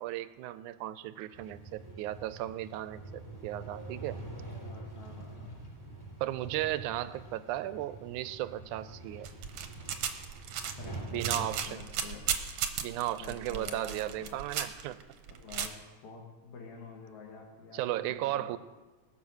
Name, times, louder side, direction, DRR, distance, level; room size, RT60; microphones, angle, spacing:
voice 1, 0.0-4.2 6.2-9.3 11.1-11.8 12.8-15.0 17.7-18.6, right 14 dB, 85° right, 14 dB, 2.0 m, -35 dB
sound 1, 1.3-11.6, right 2 dB, 5° left, 3.5 m, -45 dB
voice 2, 4.5-5.6 10.8-12.3 13.2-14.4 15.3-18.6, left 5 dB, 70° left, -2 dB, 3.0 m, -48 dB
sound 2, 9.2-15.7, right 8 dB, 65° right, 1.7 m, -35 dB
20.5 x 7.4 x 6.4 m, 1.3 s
omnidirectional pair, 3.6 m